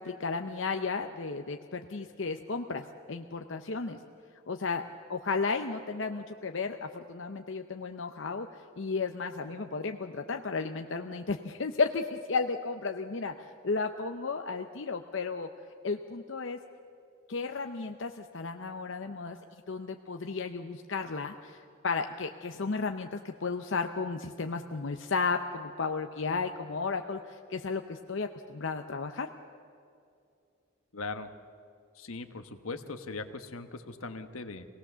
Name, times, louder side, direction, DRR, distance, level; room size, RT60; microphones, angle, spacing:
voice 1, 0.0-4.0 4.5-4.8 5.1-8.5 8.8-15.5 15.8-16.6 17.3-29.3, left 4 dB, 60° left, 6 dB, 0.7 m, -33 dB
voice 2, 30.9-31.3 32.0-34.7, left 3 dB, 80° left, 8 dB, 1.3 m, -39 dB
25.5 x 18.0 x 6.9 m, 2.5 s
head